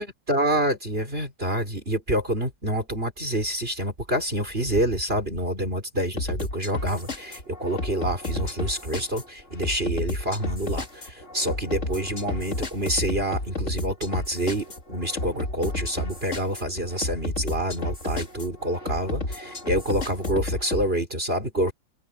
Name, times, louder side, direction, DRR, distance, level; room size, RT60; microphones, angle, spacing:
voice 1, 0.0-21.7, right 1 dB, 20° right, 3.8 m, -27 dB
sound 1, 6.2-20.9, left 2 dB, 25° left, 2.9 m, -32 dB
omnidirectional pair, 3.5 m